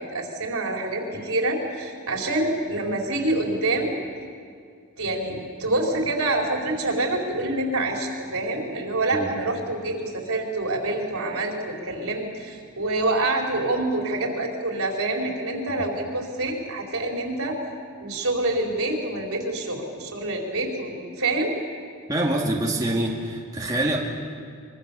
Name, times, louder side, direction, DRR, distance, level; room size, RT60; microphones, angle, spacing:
voice 1, 0.0-3.9 5.0-17.6 18.0-21.5, right 2 dB, 70° right, 0 dB, 4.4 m, -26 dB
voice 2, 22.1-24.0, right 1 dB, 15° right, -2 dB, 2.4 m, -25 dB
25.0 x 24.0 x 7.0 m, 2.2 s
head